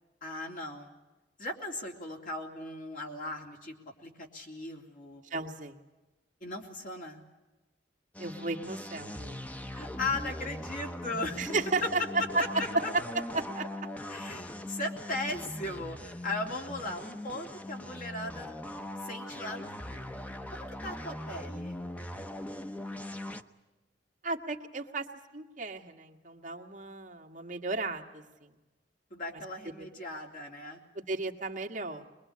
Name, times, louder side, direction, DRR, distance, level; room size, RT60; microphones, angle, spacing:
voice 1, 0.2-0.9 1.4-3.7 4.0-5.2 6.4-7.2 9.7-11.5 11.8-11.9 12.8-12.9 14.1-18.5 19.0-21.8 29.1-30.8, left 2 dB, 50° left, 1 dB, 3.2 m, -38 dB
voice 2, 5.3-5.8 8.2-9.4 11.4-12.4 12.9-13.0 13.3-13.6 24.2-25.1 25.3-28.5 31.0-32.1, right 3 dB, 45° right, 2 dB, 1.8 m, -34 dB
sound 1, 8.1-23.4, left 1 dB, 10° left, 0.8 m, -41 dB
23.0 x 22.0 x 8.6 m, 1.1 s
head